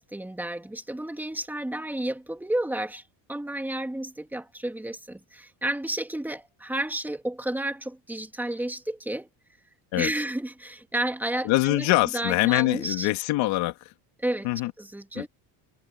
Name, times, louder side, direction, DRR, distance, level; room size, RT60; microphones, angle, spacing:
voice 1, 0.0-3.0 3.3-9.3 10.0-11.9 12.1-13.1 14.2-14.5 14.8-15.3, right 1 dB, 5° right, 2.6 m, -31 dB
voice 2, 11.4-13.9 14.4-14.7 15.2-15.3, left 18 dB, 75° left, 2.1 m, -24 dB
cardioid pair, 170°, 46 cm